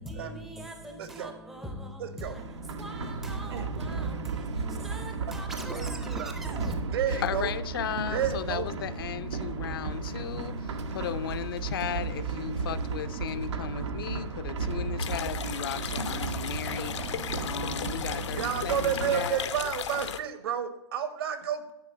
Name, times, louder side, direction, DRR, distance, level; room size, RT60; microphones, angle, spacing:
voice 1, 0.0-6.9, equal, ahead, 0.5 m, -40 dB
voice 2, 1.0-1.3 2.0-2.3 3.5-3.7 5.7-5.9 6.2-6.3 6.9-7.5 8.1-8.7 18.3-21.7, right 8 dB, 60° right, 1.2 m, -31 dB
sound 1, 2.2-19.3, right 4 dB, 80° right, 1.0 m, -34 dB
voice 3, 7.1-19.4, left 10 dB, 55° left, 0.5 m, -36 dB
sound 2, 15.0-20.2, left 8 dB, 85° left, 0.8 m, -36 dB
9.9 x 3.9 x 7.3 m
hypercardioid pair, 165°, 15 cm